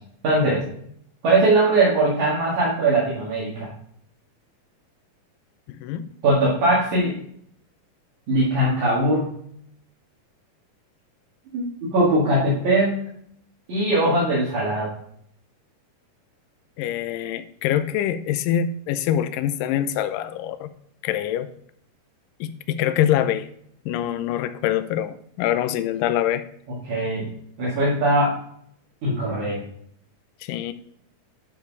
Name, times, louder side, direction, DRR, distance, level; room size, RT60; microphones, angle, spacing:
voice 1, 0.2-0.6 1.2-3.7 6.2-7.2 8.3-9.4 11.5-13.0 13.7-14.9 26.8-27.3 27.6-28.4 29.0-29.6, right 2 dB, 65° right, -7 dB, 3.3 m, -20 dB
voice 2, 5.7-6.1 16.8-20.7 21.0-21.5 22.4-23.5 23.9-26.4 30.4-30.7, left 11 dB, 85° left, 12 dB, 2.3 m, -24 dB
11.5 x 4.6 x 4.1 m, 0.67 s
omnidirectional pair, 3.8 m